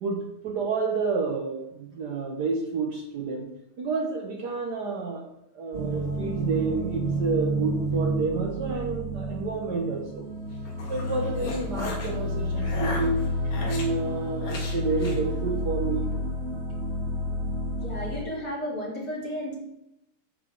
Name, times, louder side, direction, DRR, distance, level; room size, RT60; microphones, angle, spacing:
voice 1, 0.0-3.5 3.8-10.3 10.9-13.3 13.7-16.3, right 4 dB, 60° right, 2 dB, 1.4 m, -30 dB
sound 1, 5.7-18.2, equal, 30° right, 1.6 m, -30 dB
sound 2, 10.5-12.1 12.6-13.9 14.4-15.2, left 3 dB, 85° left, 2.4 m, -37 dB
voice 2, 17.8-19.6, equal, 45° left, -5 dB, 3.6 m, -33 dB
8.4 x 7.6 x 3.7 m, 0.84 s
omnidirectional pair, 2.2 m